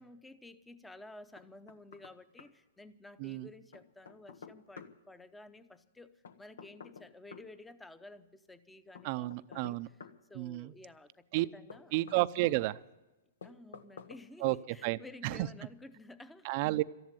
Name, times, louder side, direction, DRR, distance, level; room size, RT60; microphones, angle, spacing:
voice 1, 0.0-9.8 10.3-11.2 11.5-11.9 13.4-16.5, left 2 dB, 5° left, 13 dB, 0.8 m, -53 dB
Knock, 1.4-2.1 2.4-2.5 3.7-4.9 6.2-7.5 8.9-10.2 11.4-12.6 13.4-14.2 14.5-14.6, left 5 dB, 85° left, 1.2 m, -50 dB
voice 2, 9.0-9.9 10.3-10.7 11.3-11.5 11.9-12.8 14.4-15.5 16.4-16.8, right 19 dB, 45° right, 15 dB, 0.5 m, -32 dB
13.5 x 11.0 x 9.0 m, 1.0 s
hypercardioid pair, 140°, 0 cm